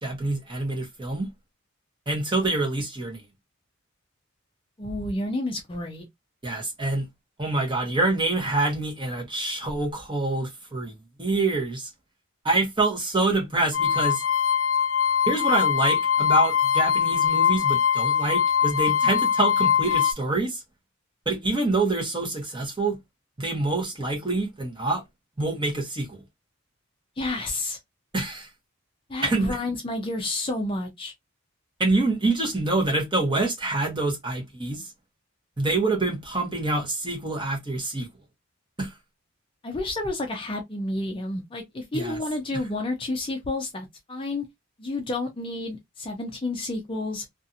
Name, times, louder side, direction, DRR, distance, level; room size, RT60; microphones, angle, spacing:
voice 1, 0.0-1.3 2.1-3.2 6.4-7.1 7.4-11.9 12.4-14.2 15.3-20.6 21.3-23.0 23.4-25.0 25.4-26.2 28.1-28.5 29.2-29.6 31.8-34.9 35.6-38.1 38.8-38.9 41.9-42.2, right 2 dB, 20° right, 0.9 m, -26 dB
voice 2, 4.8-6.0 27.2-27.8 29.1-31.1 39.6-44.4 44.8-47.2, left 2 dB, 25° left, 0.5 m, -30 dB
sound 1, 13.7-20.1, left 8 dB, 75° left, 0.4 m, -22 dB
2.7 x 2.4 x 2.6 m
head